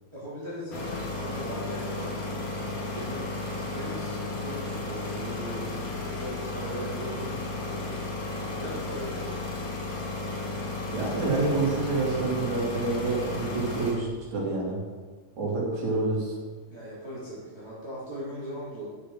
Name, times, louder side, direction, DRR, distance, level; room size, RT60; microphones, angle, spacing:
voice 1, 0.1-7.8 8.2-9.5 16.7-18.9, equal, 10° right, -9 dB, 3.2 m, -39 dB
sound 1, 0.7-13.9, left 2 dB, 70° left, 3.5 m, -34 dB
voice 2, 10.9-14.8 15.4-16.3, right 3 dB, 60° right, -4 dB, 4.0 m, -28 dB
11.5 x 7.8 x 5.0 m, 1.4 s
omnidirectional pair, 3.6 m